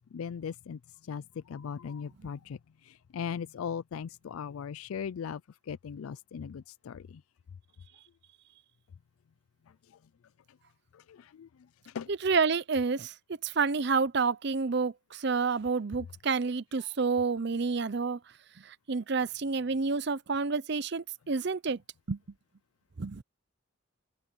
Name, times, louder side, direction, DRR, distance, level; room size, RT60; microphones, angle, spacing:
voice 1, 0.1-0.8 1.1-1.2 1.5-2.6 3.1-5.4 5.7-7.0 11.1-11.5 11.9-12.1, left 7 dB, 85° left, 0.4 m, -38 dB
voice 2, 12.1-13.1 13.4-18.2 18.6-21.8 22.1-22.2 23.0-23.2, right 4 dB, 55° right, 0.6 m, -29 dB
open air
head